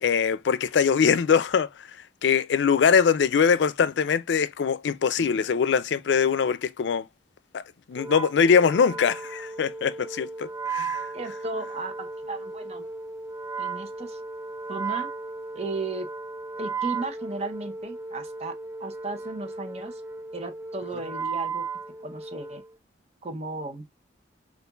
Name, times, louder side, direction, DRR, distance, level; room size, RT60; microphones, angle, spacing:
voice 1, 0.0-7.1 7.5-7.6 7.9-11.1, left 6 dB, 80° left, 0.4 m, -22 dB
Wind instrument woodwind instrument, 7.9-22.7, right 4 dB, 15° right, 0.4 m, -35 dB
voice 2, 11.1-12.8 13.6-14.2 14.7-15.1 15.5-16.1 16.6-18.5 18.8-20.0 20.3-21.6 22.0-22.6 23.2-23.8, right 3 dB, 35° right, 0.7 m, -35 dB
6.7 x 2.4 x 2.3 m
head